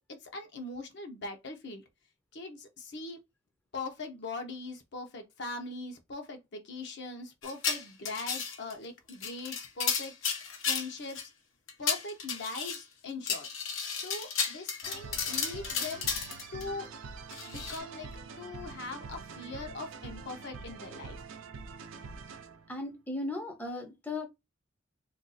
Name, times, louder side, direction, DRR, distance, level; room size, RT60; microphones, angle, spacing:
voice 1, 0.0-1.8 2.3-3.2 3.7-10.1 10.6-11.3 11.8-13.5 13.9-16.1 16.5-16.9 17.4-18.1 18.4-21.2, left 3 dB, 60° left, 0.7 m, -41 dB
sound 1, 7.4-8.7 9.1-11.2 11.7-12.8 13.3-16.6 17.3-17.8, left 6 dB, 90° left, 0.9 m, -33 dB
sound 2, 14.8-22.8, right 5 dB, 85° right, 0.5 m, -45 dB
voice 2, 22.7-24.3, left 2 dB, 10° left, 0.5 m, -36 dB
2.5 x 2.3 x 3.9 m
head